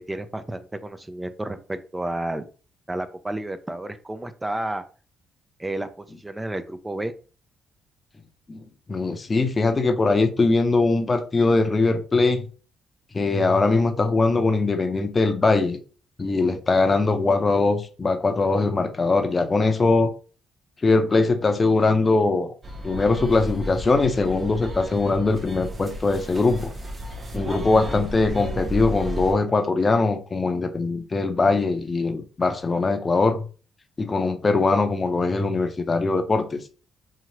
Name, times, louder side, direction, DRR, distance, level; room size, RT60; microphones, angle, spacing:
voice 1, 0.0-2.4 2.9-4.8 5.6-7.1, right 1 dB, 15° right, 11 dB, 0.4 m, -31 dB
voice 2, 8.5-12.4 13.1-15.8 16.2-20.1 20.8-22.5 22.8-26.7 27.3-33.4 34.0-36.6, left 3 dB, 30° left, 6 dB, 0.6 m, -21 dB
sound 1, 22.6-29.3, equal, 35° right, 0.8 m, -33 dB
3.0 x 2.4 x 2.9 m, 0.36 s
supercardioid pair, 70°, 0 cm